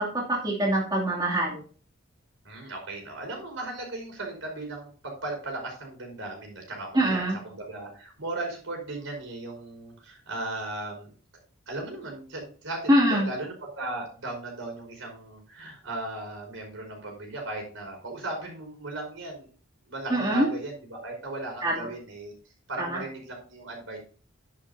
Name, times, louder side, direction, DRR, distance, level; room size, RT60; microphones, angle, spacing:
voice 1, 0.0-1.6 6.9-7.4 12.9-13.3 20.1-20.5 21.6-21.9 22.8-23.0, right 1 dB, 20° right, -5 dB, 2.8 m, -24 dB
voice 2, 2.4-11.1 11.7-19.5 19.9-22.3 22.7-24.0, right 2 dB, 75° right, 1 dB, 5.3 m, -37 dB
11.5 x 10.5 x 2.8 m, 0.41 s
head